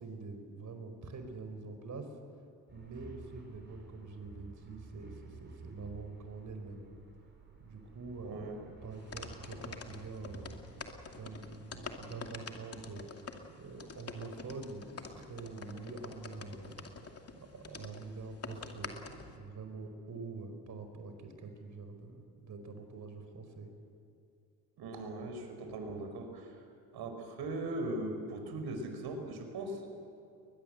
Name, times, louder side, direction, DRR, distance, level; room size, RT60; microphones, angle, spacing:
voice 1, 0.0-2.1 2.7-6.8 7.6-13.1 13.5-17.2 17.5-23.7, right 3 dB, 40° right, 7 dB, 4.8 m, -45 dB
sound 1, 2.7-12.1, right 4 dB, 25° right, 6.4 m, -53 dB
voice 2, 8.2-8.6 24.8-26.6 26.9-29.9, right 2 dB, 60° right, 5 dB, 5.4 m, -39 dB
sound 2, 8.9-19.4, left 4 dB, 35° left, 2.6 m, -47 dB
22.5 x 20.0 x 7.9 m, 2.6 s
supercardioid pair, 75°, 43 cm